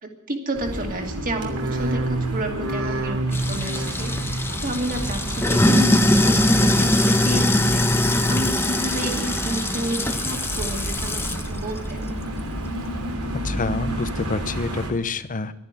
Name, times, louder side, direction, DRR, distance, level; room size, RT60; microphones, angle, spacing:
voice 1, 0.0-12.1, right 1 dB, 40° right, 2 dB, 2.4 m, -31 dB
sound 1, 0.5-14.9, right 1 dB, 80° right, 3.0 m, -31 dB
sound 2, 1.3-6.6 6.9-7.6 8.0-8.7 9.1-9.8 10.2-10.9 11.3-11.9 12.5-12.6, right 2 dB, 65° right, 1.5 m, -31 dB
Sink (filling or washing), 3.3-11.5, left 1 dB, 10° left, 1.1 m, -22 dB
voice 2, 13.4-15.5, left 3 dB, 35° left, 13 dB, 0.8 m, -27 dB
12.5 x 10.5 x 9.7 m, 0.91 s
head